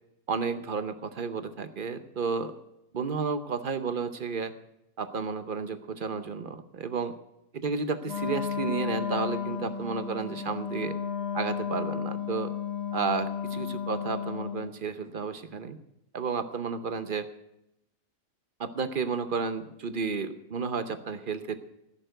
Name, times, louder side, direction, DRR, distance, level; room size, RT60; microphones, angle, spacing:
voice 1, 0.3-2.5 2.9-4.5 5.0-7.1 7.5-11.0 11.3-12.5 12.9-15.8 16.1-17.3 18.6-21.6, right 5 dB, 50° right, 10 dB, 0.6 m, -32 dB
Wind instrument woodwind instrument, 8.0-14.7, left 7 dB, 40° left, 1.6 m, -33 dB
15.5 x 6.7 x 9.1 m, 0.84 s
omnidirectional pair, 1.8 m